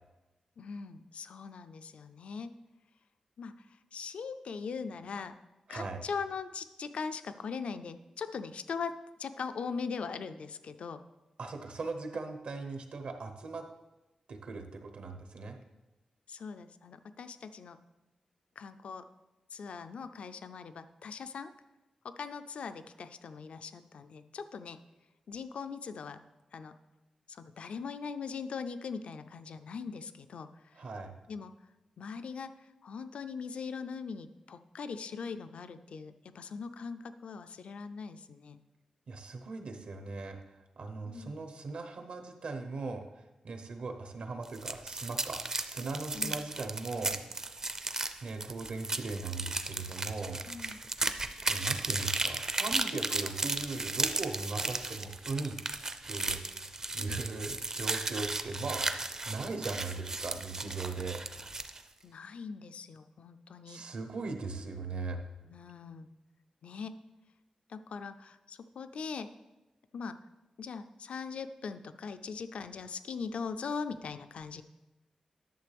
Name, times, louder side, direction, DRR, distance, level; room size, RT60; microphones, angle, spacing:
voice 1, 0.6-2.5 3.4-3.7 3.9-5.4 5.7-11.0 16.3-17.8 18.6-19.0 19.5-21.5 22.0-24.8 25.3-26.2 26.5-26.7 27.3-30.8 31.3-31.5 32.0-32.5 32.8-38.6 41.1-41.3 46.1-46.4 50.5-50.8 56.9-57.2 62.0-63.8 65.4-66.1 66.6-66.9 67.7-69.3 69.9-70.2 70.6-74.6, left 5 dB, 75° left, 11 dB, 0.4 m, -41 dB
voice 2, 5.7-6.0 11.4-13.6 14.3-15.6 30.8-31.1 39.1-43.0 43.4-47.6 48.2-50.4 51.4-55.6 56.1-56.4 56.9-61.2 63.7-65.2, right 3 dB, 70° right, 6 dB, 0.9 m, -39 dB
sound 1, 44.4-61.8, right 3 dB, 30° right, 0.4 m, -35 dB
11.0 x 6.7 x 3.4 m, 1.0 s
wide cardioid pair, 145°, 2 cm